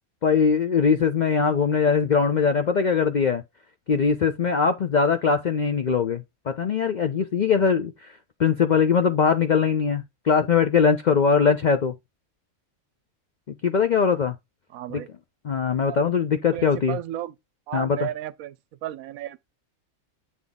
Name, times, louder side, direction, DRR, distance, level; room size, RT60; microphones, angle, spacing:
voice 1, 0.2-3.4 3.9-7.9 8.4-11.9 13.6-14.3 14.9-15.0 15.4-17.0 17.7-18.1, left 6 dB, 75° left, 0.4 m, -21 dB
voice 2, 14.7-15.1 15.9-16.0 16.5-17.3 17.7-18.6 18.8-19.4, right 13 dB, 75° right, 1.0 m, -33 dB
8.0 x 3.6 x 3.9 m
omnidirectional pair, 1.5 m